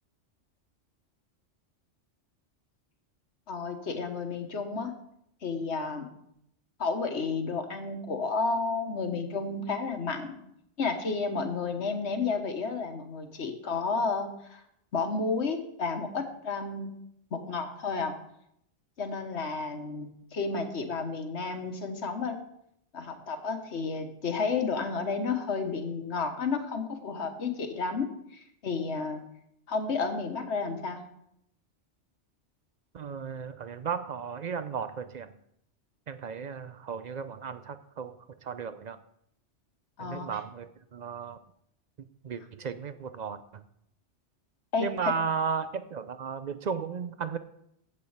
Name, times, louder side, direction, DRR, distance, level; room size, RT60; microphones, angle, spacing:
voice 1, 3.5-4.9 5.4-6.1 6.8-10.4 10.8-14.6 14.9-16.9 17.3-18.1 19.0-22.4 22.9-29.2 29.7-31.0 40.0-40.3 44.7-45.1, left 4 dB, 65° left, 6 dB, 1.5 m, -31 dB
voice 2, 32.9-35.3 36.1-39.0 40.0-41.4 42.2-43.6 44.8-47.4, right 6 dB, 55° right, 12 dB, 0.5 m, -35 dB
7.5 x 6.6 x 8.0 m, 0.75 s
omnidirectional pair, 1.2 m